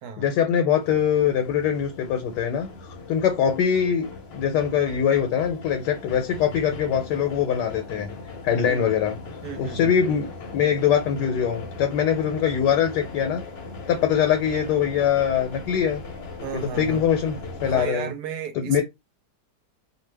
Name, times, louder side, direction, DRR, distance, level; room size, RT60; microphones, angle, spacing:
voice 1, 0.2-8.1 8.4-9.2 9.6-13.4 13.9-16.0 16.5-18.1 18.5-18.8, left 8 dB, 85° left, 1.2 m, -23 dB
sound 1, 0.8-17.9, left 3 dB, 50° left, 0.8 m, -39 dB
voice 2, 9.4-9.9 16.4-17.0 17.7-18.8, right 7 dB, 75° right, 1.1 m, -34 dB
2.6 x 2.4 x 3.2 m
omnidirectional pair, 1.8 m